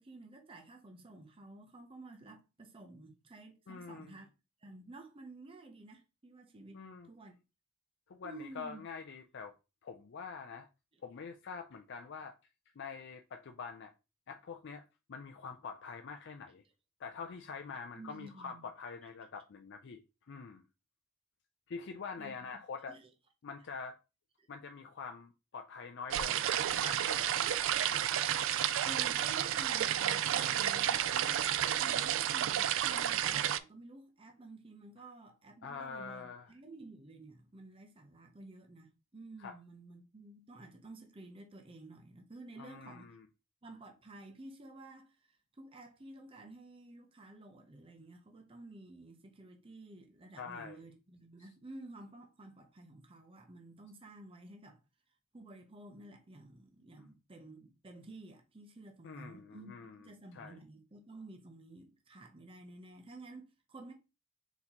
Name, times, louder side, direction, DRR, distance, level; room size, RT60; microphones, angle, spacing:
voice 1, 0.0-4.3 4.6-6.8 7.1-7.4 8.2-8.8 18.0-18.6 22.2-22.5 22.9-23.1 24.4-24.5 28.8-43.1 43.6-54.8 55.3-63.9, right 2 dB, 25° right, 0.6 m, -52 dB
voice 2, 3.7-4.2 6.7-7.1 8.1-9.5 9.8-10.7 11.0-12.3 12.8-13.9 14.3-16.6 17.0-20.6 21.7-23.0 23.4-24.0 24.5-28.2 35.6-36.5 39.4-39.5 42.6-43.3 50.4-50.8 59.0-60.0 60.3-60.6, left 5 dB, 55° left, 0.4 m, -45 dB
sound 1, 26.1-33.6, right 10 dB, 60° right, 0.3 m, -31 dB
4.2 x 4.0 x 2.9 m
head